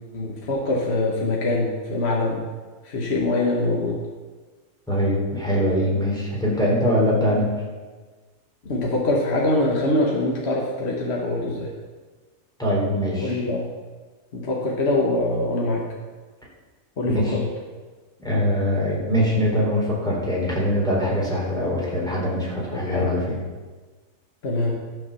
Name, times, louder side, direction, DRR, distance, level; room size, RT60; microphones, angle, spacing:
voice 1, 0.1-2.4 2.8-4.0 8.6-11.7 13.2-13.6 14.3-15.8 17.0-17.4 22.7-23.1 24.4-24.7, left 2 dB, 50° left, -2 dB, 1.7 m, -23 dB
voice 2, 4.9-7.5 12.6-13.4 17.0-17.3 18.2-23.4, equal, 5° left, -6 dB, 3.8 m, -22 dB
13.0 x 6.0 x 7.0 m, 1.4 s
omnidirectional pair, 1.4 m